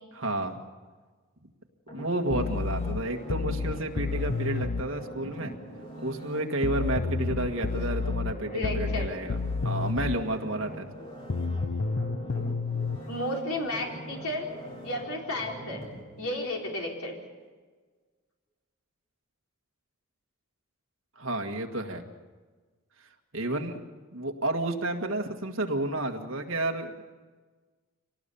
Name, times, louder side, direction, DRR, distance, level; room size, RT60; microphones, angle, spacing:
voice 1, 0.1-0.6 1.9-5.6 6.0-9.4 9.6-10.9 21.2-22.0 23.3-23.8 24.1-26.9, right 1 dB, 65° right, 3 dB, 1.9 m, -31 dB
sound 1, 1.9-16.9 17.4-17.5, right 1 dB, 25° left, 3.7 m, -43 dB
sound 2, 2.3-4.9 6.6-10.2 11.3-13.0, left 4 dB, 55° left, 0.6 m, -30 dB
voice 2, 8.5-9.1 13.1-14.5 14.8-15.8 16.2-17.1, left 1 dB, 85° left, 0 dB, 4.2 m, -32 dB
25.0 x 18.5 x 7.0 m, 1.4 s
head